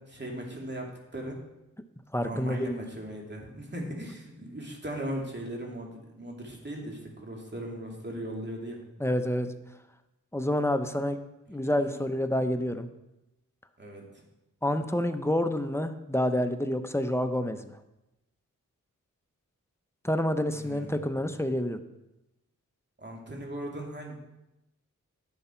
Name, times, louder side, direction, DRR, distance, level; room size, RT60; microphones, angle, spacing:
voice 1, 0.1-0.9 1.1-1.4 2.2-8.8 11.6-12.0 13.8-14.1 20.6-20.9 23.0-24.2, right 1 dB, 35° right, -1 dB, 2.5 m, -38 dB
voice 2, 2.1-2.7 9.0-9.5 10.3-11.2 11.5-12.9 14.6-17.8 20.0-21.8, left 1 dB, 10° left, 8 dB, 0.8 m, -28 dB
11.0 x 7.0 x 4.4 m, 0.94 s
cardioid pair, 55°, 32 cm